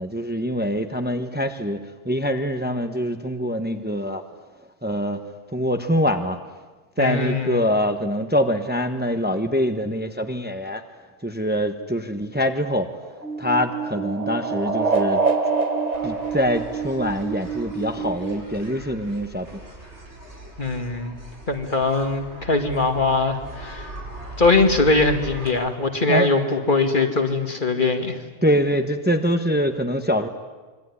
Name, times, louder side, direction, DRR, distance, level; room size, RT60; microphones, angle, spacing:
voice 1, 0.0-4.2 4.8-5.2 5.5-6.4 7.0-10.8 11.2-12.9 13.4-15.2 16.0-19.6 26.1-26.3 28.4-30.3, equal, 10° right, 6 dB, 1.2 m, -24 dB
voice 2, 7.0-7.6 20.6-21.1 21.5-23.9 24.4-28.2, left 3 dB, 45° left, 5 dB, 2.4 m, -21 dB
sound 1, 12.7-17.5, right 3 dB, 35° right, 1.7 m, -26 dB
sound 2, 13.2-18.4, right 8 dB, 80° left, 3.8 m, -31 dB
sound 3, 15.9-25.5, right 1 dB, 85° right, 7.0 m, -40 dB
26.0 x 22.5 x 9.9 m, 1.3 s
omnidirectional pair, 1.1 m